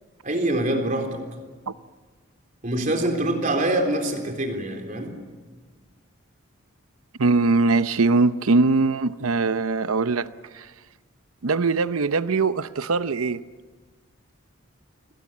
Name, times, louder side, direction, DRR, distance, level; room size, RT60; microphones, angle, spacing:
voice 1, 0.2-1.2 2.6-5.1, right 1 dB, 40° right, 3.8 m, -25 dB
voice 2, 7.2-10.3 10.5-10.7 11.4-13.4, right 3 dB, 85° right, 0.7 m, -21 dB
27.5 x 21.0 x 7.4 m
head